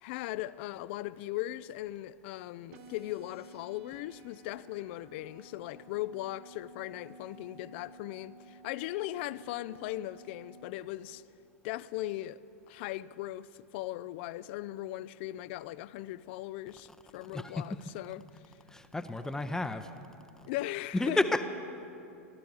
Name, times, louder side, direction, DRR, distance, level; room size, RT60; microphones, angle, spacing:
voice 1, 0.0-11.2 11.6-12.4 12.7-18.3 20.4-21.2, left 15 dB, 50° left, 0.4 m, -38 dB
sound 1, 2.7-10.7, right 2 dB, 50° right, 1.1 m, -54 dB
voice 2, 18.7-19.9 20.9-21.4, left 2 dB, 5° left, 0.6 m, -31 dB
16.0 x 12.0 x 7.1 m
figure-of-eight pair, 95°, 8 cm